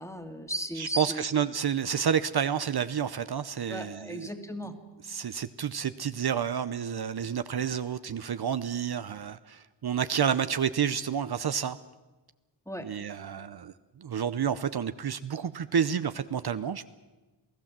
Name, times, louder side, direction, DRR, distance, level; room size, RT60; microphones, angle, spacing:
voice 1, 0.0-1.2 3.7-4.7 12.7-12.9, equal, 5° left, 6 dB, 2.2 m, -36 dB
voice 2, 0.8-4.3 5.1-11.8 12.8-16.9, right 8 dB, 60° right, 12 dB, 0.8 m, -30 dB
28.0 x 17.5 x 7.4 m, 1.2 s
wide cardioid pair, 105°, 44 cm